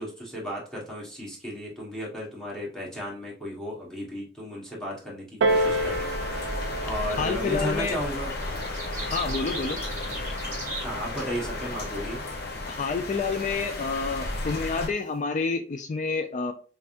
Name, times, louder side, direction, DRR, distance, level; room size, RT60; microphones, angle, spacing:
voice 1, 0.0-6.1 6.8-8.3 10.8-12.2, equal, 5° left, -5 dB, 1.2 m, -34 dB
Piano, 5.4-10.6 11.4-11.5, right 1 dB, 75° right, 0.4 m, -31 dB
sound 1, 5.5-14.9, left 2 dB, 55° left, 0.8 m, -33 dB
sound 2, 6.1-6.2 7.4-7.8 8.1-11.7, right 2 dB, 15° right, 1.4 m, -38 dB
voice 2, 7.2-8.0 9.1-9.8 12.7-16.5, left 4 dB, 40° left, 7 dB, 0.3 m, -28 dB
3.5 x 3.4 x 2.6 m, 0.38 s
head